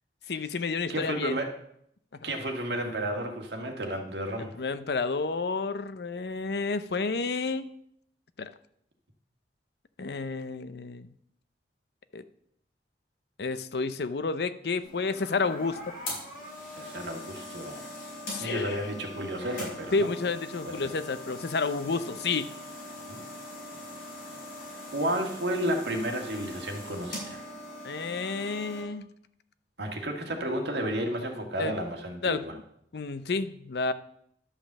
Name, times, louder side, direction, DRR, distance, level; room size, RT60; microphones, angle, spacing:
voice 1, 0.3-1.4 2.1-2.3 4.6-7.7 8.4-8.5 10.0-11.1 12.1-12.2 13.4-15.9 18.3-18.9 19.9-22.5 27.8-29.1 31.6-31.8 32.2-32.5 32.9-33.9, left 4 dB, 70° left, 13 dB, 0.6 m, -30 dB
voice 2, 0.9-1.5 2.2-4.5 16.7-17.8 18.4-20.1 20.7-20.9 23.1-23.2 24.9-27.4 29.8-32.5, right 1 dB, 75° right, 3 dB, 1.8 m, -32 dB
sound 1, 14.8-28.8, left 1 dB, 50° left, 4.8 m, -41 dB
11.5 x 5.3 x 7.2 m, 0.72 s
head